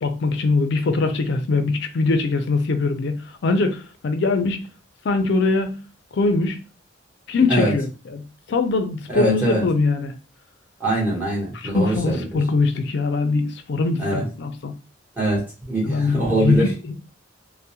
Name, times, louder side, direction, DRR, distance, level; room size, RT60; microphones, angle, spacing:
voice 1, 0.0-4.6 5.0-5.8 6.1-6.6 7.3-8.2 8.5-10.1 11.5-14.7 15.8-17.0, left 3 dB, 60° left, 0.4 m, -22 dB
voice 2, 9.1-9.6 10.8-12.2 14.0-14.2 15.2-16.7, right 1 dB, 10° right, 1.0 m, -23 dB
2.2 x 2.1 x 2.8 m
head